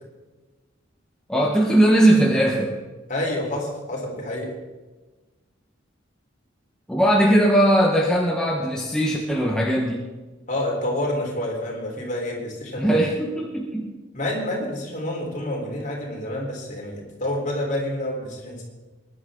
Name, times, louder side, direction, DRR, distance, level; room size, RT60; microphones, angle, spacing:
voice 1, 1.3-2.8 6.9-10.0 12.8-13.9, right 1 dB, 5° left, -2 dB, 1.2 m, -19 dB
voice 2, 3.1-4.5 10.5-13.0 14.1-18.6, left 1 dB, 40° left, -2 dB, 4.0 m, -28 dB
22.0 x 11.0 x 3.8 m, 1.2 s
head